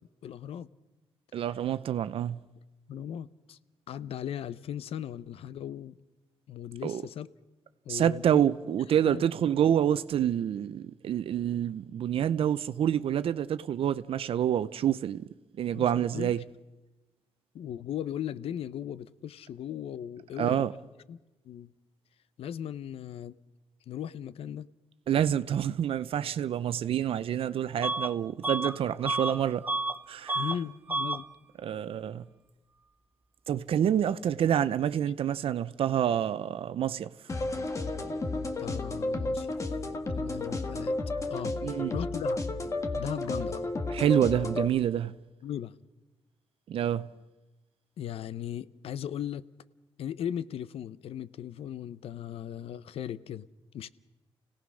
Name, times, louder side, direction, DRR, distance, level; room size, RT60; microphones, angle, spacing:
voice 1, 0.2-0.7 2.9-3.6 3.9-5.9 6.5-7.3 7.9-8.4 9.1-9.3 15.7-16.3 17.5-20.7 21.1-21.2 21.4-21.7 22.4-23.4 23.9-24.7 30.3-31.3 38.6-39.5 40.1-41.6 41.9-42.4 43.0-43.6 45.4-45.7 48.0-49.4 50.0-53.5 53.7-53.9, left 10 dB, 75° left, 0.7 m, -37 dB
voice 2, 1.3-2.4 6.8-7.0 7.9-15.3 15.6-16.4 20.4-20.7 25.1-29.6 30.1-30.4 31.6-32.2 33.5-37.1 41.6-41.9 43.9-45.1 46.7-47.1, right 10 dB, 65° right, 0.7 m, -27 dB
Bus / Alarm, 27.8-28.1 28.4-30.0 30.3-30.6 30.9-31.2, right 2 dB, 20° right, 0.9 m, -31 dB
sound 1, 37.3-44.7, left 2 dB, 30° left, 1.6 m, -32 dB
29.5 x 17.5 x 6.3 m
cardioid pair, 115°, 10 cm